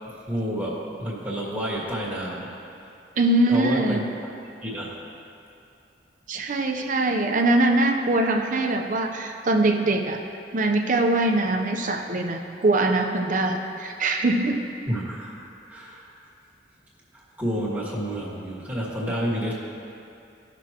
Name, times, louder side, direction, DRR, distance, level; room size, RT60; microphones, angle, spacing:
voice 1, 0.1-2.6 3.5-4.0 4.6-5.0 14.9-15.4 15.7-16.1 17.1-19.5, equal, 10° right, -7 dB, 1.9 m, -29 dB
voice 2, 3.2-4.0 6.3-10.2 10.5-14.7, right 2 dB, 45° right, 3 dB, 0.7 m, -22 dB
16.5 x 6.1 x 3.0 m, 2.6 s
head